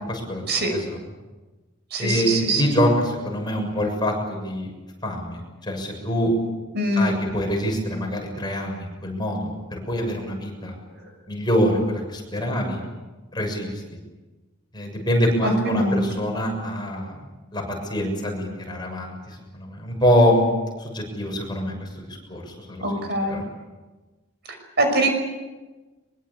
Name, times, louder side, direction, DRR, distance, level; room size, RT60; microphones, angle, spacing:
voice 1, 0.1-0.4 0.7-1.0 2.0-4.7 5.0-6.3 7.0-10.8 11.3-12.8 13.3-13.7 14.7-17.1 17.5-20.4 20.8-22.4 23.0-23.4, equal, 20° left, 1 dB, 6.8 m, -25 dB
voice 2, 1.9-2.6 6.7-7.2 15.4-16.0 22.8-23.4 24.8-25.1, right 1 dB, 55° right, 5 dB, 6.0 m, -23 dB
23.5 x 23.0 x 8.6 m, 1.2 s
head